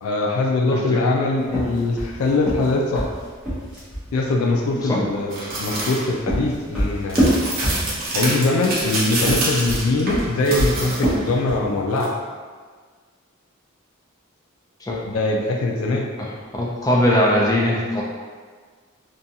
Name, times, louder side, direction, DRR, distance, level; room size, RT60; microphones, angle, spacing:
voice 1, 0.0-3.1 4.1-7.3 8.1-12.1 15.1-16.1, left 2 dB, 85° left, 0 dB, 0.3 m, -22 dB
voice 2, 0.7-1.0 4.8-5.0 14.8-15.0 16.2-18.0, left 1 dB, 15° left, -4 dB, 0.4 m, -21 dB
sound 1, 1.4-4.1 5.8-8.2 9.1-11.7, equal, 5° right, 0.7 m, -24 dB
sound 2, 5.3-6.0 7.1-11.3 12.0-12.1, right 2 dB, 45° right, 0.6 m, -26 dB
2.5 x 2.3 x 2.7 m, 1.5 s
head